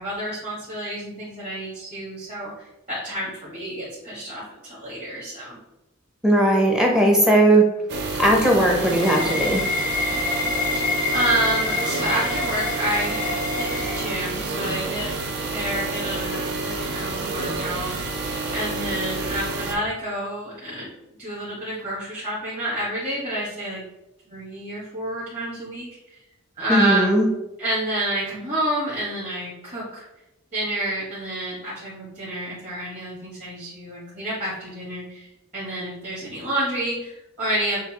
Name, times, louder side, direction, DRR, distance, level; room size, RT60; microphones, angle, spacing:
voice 1, 0.0-5.6 10.7-10.9 11.1-15.1 15.5-18.2 18.5-20.9 21.2-23.8 24.3-26.2 26.6-27.2 27.6-30.0 30.5-35.3 35.5-37.8, right 1 dB, 35° right, -8 dB, 1.4 m, -29 dB
voice 2, 6.2-7.6 8.2-9.7 26.7-27.3, right 1 dB, 5° right, 0 dB, 0.6 m, -18 dB
sound 1, 7.9-19.8, right 3 dB, 55° right, 0.6 m, -29 dB
sound 2, 8.2-14.6, left 3 dB, 40° left, 0.5 m, -28 dB
6.5 x 2.3 x 2.9 m, 0.93 s
head